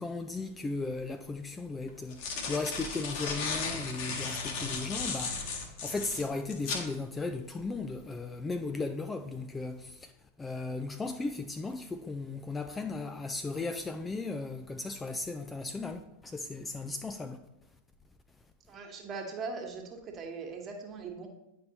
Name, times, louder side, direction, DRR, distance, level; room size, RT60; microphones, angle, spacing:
voice 1, 0.0-10.1 10.4-17.4, left 3 dB, 15° left, 0.3 m, -36 dB
sound 1, 0.8-0.9 1.9-6.9, left 4 dB, 50° left, 1.2 m, -35 dB
voice 2, 18.7-21.3, right 4 dB, 30° right, 1.4 m, -40 dB
9.2 x 5.2 x 2.9 m
figure-of-eight pair, 90°, 0 cm